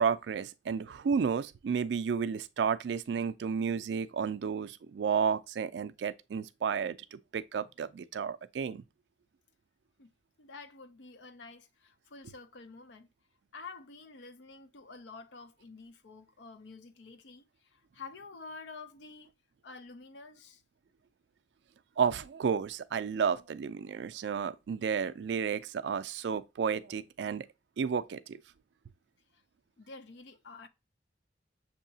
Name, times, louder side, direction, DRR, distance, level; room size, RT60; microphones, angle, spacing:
voice 1, 0.0-8.8 22.0-27.5 27.8-28.4, right 6 dB, 70° right, 0.3 m, -32 dB
voice 2, 10.4-13.1 13.5-19.3 19.6-20.6 29.8-30.7, left 4 dB, 75° left, 0.5 m, -49 dB
6.6 x 2.8 x 2.7 m
head